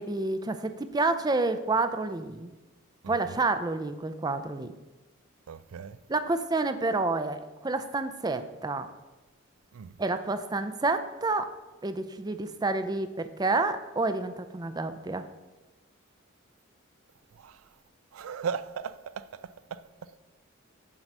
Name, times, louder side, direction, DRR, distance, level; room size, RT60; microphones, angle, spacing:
voice 1, 0.0-2.5 3.1-4.7 6.1-8.9 10.0-11.5 11.8-15.3, right 3 dB, 20° right, 0.4 m, -29 dB
voice 2, 3.0-3.4 5.5-6.0 9.7-10.0 17.3-17.8 18.1-20.2, right 6 dB, 90° right, 0.4 m, -38 dB
7.5 x 5.4 x 6.0 m
head